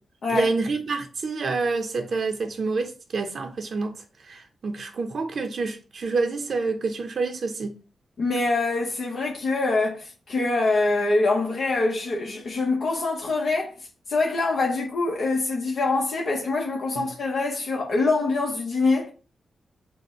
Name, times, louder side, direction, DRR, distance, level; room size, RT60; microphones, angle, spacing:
voice 1, 0.3-4.0 4.3-7.7 17.0-17.1, right 3 dB, 60° right, 0.6 m, -27 dB
voice 2, 8.2-13.7 14.1-19.1, left 3 dB, 70° left, 0.8 m, -24 dB
5.2 x 2.1 x 4.2 m
cardioid pair, 75°, 0 cm